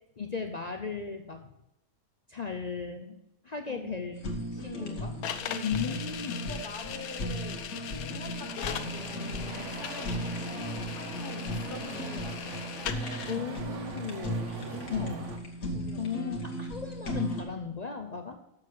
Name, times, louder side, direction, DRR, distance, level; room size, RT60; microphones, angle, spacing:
voice 1, 0.2-1.4 2.3-3.1 3.4-4.1 4.6-5.1 5.6-6.5 13.3-14.6 14.9-15.2 15.7-18.4, left 6 dB, 55° left, 5 dB, 0.4 m, -36 dB
voice 2, 3.6-4.0 4.6-5.1 5.4-6.0 6.3-7.7 8.0-12.7 13.9-15.1 15.7-16.3, left 2 dB, 35° left, 0 dB, 1.9 m, -45 dB
Fire, 4.1-17.4, equal, 70° left, 1.8 m, -37 dB
sound 1, 5.2-13.4, left 9 dB, 90° left, 1.2 m, -39 dB
sound 2, 8.6-15.4, right 4 dB, 60° right, 1.3 m, -43 dB
6.9 x 6.7 x 6.5 m, 0.87 s
omnidirectional pair, 1.5 m